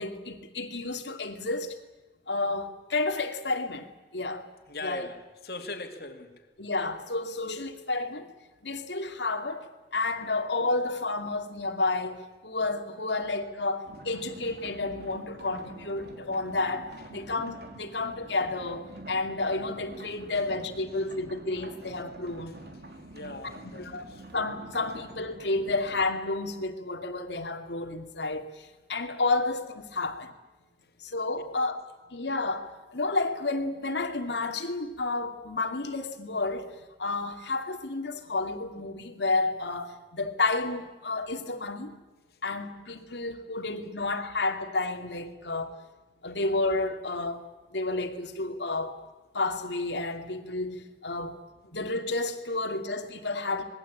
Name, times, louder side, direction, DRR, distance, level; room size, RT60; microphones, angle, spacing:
voice 1, 0.0-1.7 2.3-3.9 4.1-4.4 4.8-5.1 6.6-8.3 8.6-9.6 9.9-22.6 23.8-24.0 24.3-30.3 31.0-31.8 32.1-36.7 37.0-41.9 42.4-45.8 46.2-47.4 47.7-48.9 49.3-51.4 51.7-53.6, left 3 dB, 85° left, 6 dB, 2.6 m, -31 dB
voice 2, 4.7-6.5 22.5-22.6 22.9-24.3 42.3-42.4 46.3-46.4, left 2 dB, 60° left, 5 dB, 2.7 m, -41 dB
sound 1, 13.9-26.0, right 1 dB, 65° right, 3.1 m, -47 dB
26.5 x 21.0 x 8.7 m, 1.2 s
head